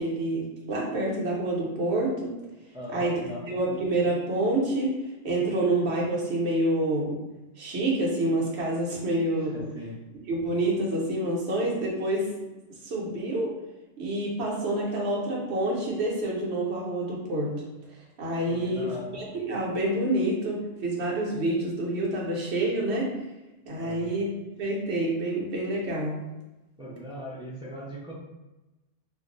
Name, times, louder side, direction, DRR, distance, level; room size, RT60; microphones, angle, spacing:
voice 1, 0.0-2.3 2.9-4.9 5.2-7.2 7.6-9.6 10.3-12.3 12.8-13.5 14.0-17.5 18.2-18.9 19.1-23.1 23.6-24.3 24.6-26.1, right 1 dB, 60° right, -3 dB, 1.0 m, -27 dB
voice 2, 2.7-3.4 9.4-10.0 18.5-19.1 23.8-24.1 26.8-28.1, equal, 10° right, -6 dB, 0.3 m, -39 dB
2.5 x 2.2 x 3.8 m, 1.0 s
omnidirectional pair, 1.3 m